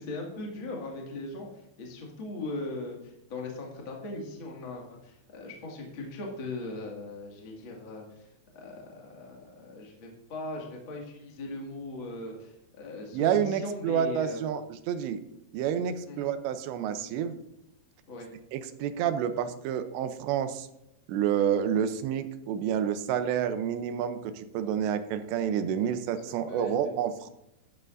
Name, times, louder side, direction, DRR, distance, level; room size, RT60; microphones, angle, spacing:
voice 1, 0.0-1.5 1.8-8.3 8.5-14.4 16.1-16.3 18.1-18.3 25.8-26.0 26.3-26.9, left 2 dB, 45° left, -1 dB, 1.7 m, -39 dB
voice 2, 13.1-15.2 15.5-17.4 18.5-20.7 21.1-27.3, right 9 dB, 80° right, 10 dB, 2.8 m, -29 dB
12.5 x 11.0 x 2.6 m, 0.87 s
omnidirectional pair, 5.4 m